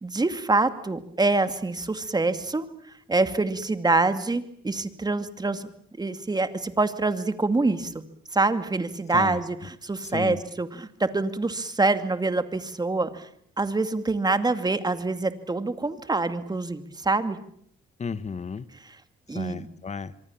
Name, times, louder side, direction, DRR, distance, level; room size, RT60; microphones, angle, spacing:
voice 1, 0.0-2.7 3.1-5.7 6.0-8.0 8.3-9.6 9.8-13.3 13.6-17.4 19.3-19.7, right 3 dB, 20° right, 10 dB, 2.3 m, -25 dB
voice 2, 10.0-10.4 18.0-18.7 19.3-20.1, left 5 dB, 35° left, 15 dB, 1.5 m, -33 dB
25.5 x 24.0 x 7.4 m, 0.65 s
cardioid pair, 90°, 20 cm